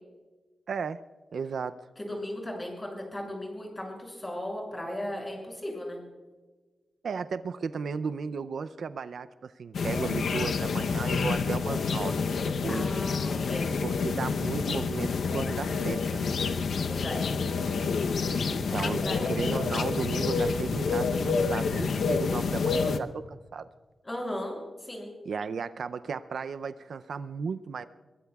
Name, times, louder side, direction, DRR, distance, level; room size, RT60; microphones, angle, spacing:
voice 1, 0.7-1.0 1.3-1.7 7.0-12.3 12.6-13.0 13.8-16.4 18.5-23.7 25.3-27.9, right 5 dB, 75° right, 12 dB, 0.5 m, -35 dB
voice 2, 2.0-6.0 12.7-13.7 16.4-17.3 18.7-19.2 24.0-25.1, left 1 dB, 20° left, 0 dB, 6.7 m, -37 dB
sound 1, 9.7-23.0, left 5 dB, 85° left, 0.8 m, -28 dB
22.5 x 22.0 x 2.4 m, 1.3 s
wide cardioid pair, 115°, 0 cm